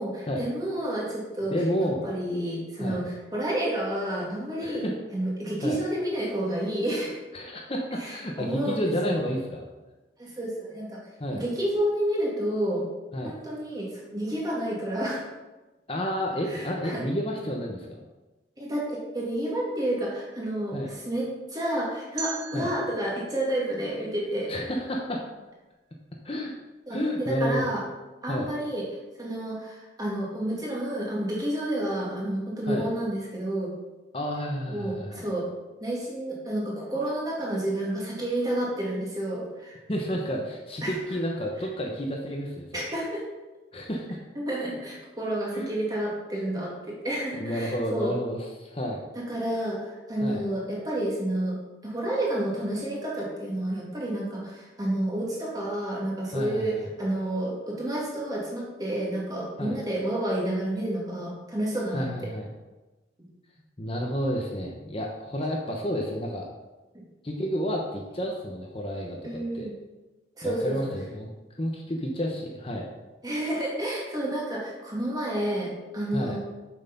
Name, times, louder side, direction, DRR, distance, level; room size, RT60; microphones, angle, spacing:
voice 1, 0.0-1.6 1.8-7.2 8.0-9.2 10.2-11.0 11.3-12.9 13.2-15.3 16.5-17.0 18.6-24.5 26.9-27.8 28.2-28.9 29.2-33.7 34.7-35.5 35.8-39.8 40.8-40.9 42.7-43.2 44.4-48.1 49.1-51.6 51.8-62.1 66.9-67.0 69.2-69.7 70.4-70.8 73.2-76.4, right 1 dB, 20° right, -4 dB, 2.2 m, -30 dB
voice 2, 1.5-2.0 2.8-3.0 4.6-4.9 5.6-5.8 7.3-9.6 11.2-11.4 13.1-13.3 15.9-18.0 20.7-20.9 22.5-22.7 24.5-25.2 26.2-26.5 26.9-27.7 28.3-28.5 32.7-32.9 34.1-35.3 39.9-42.9 43.7-44.2 45.5-45.7 47.4-49.0 50.2-50.4 56.3-56.9 59.6-59.8 61.9-62.4 63.8-66.5 67.2-69.7 70.4-71.3 71.6-72.9 76.1-76.4, equal, 30° left, 0 dB, 1.0 m, -30 dB
sound 1, 22.2-25.1, right 6 dB, 65° right, 1.5 m, -41 dB
7.2 x 6.5 x 5.4 m, 1.1 s
head